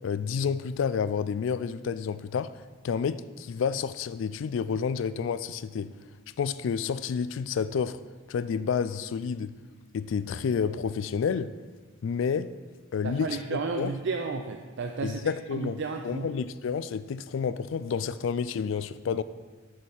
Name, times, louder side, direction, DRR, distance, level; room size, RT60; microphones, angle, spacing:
voice 1, 0.0-2.5 2.8-5.9 6.4-8.0 8.3-9.5 9.9-11.5 12.0-12.5 12.9-13.9 15.0-15.8 16.0-19.2, left 6 dB, 65° left, 0.3 m, -29 dB
voice 2, 13.0-16.3, right 4 dB, 60° right, 0.4 m, -33 dB
6.5 x 6.4 x 5.4 m
head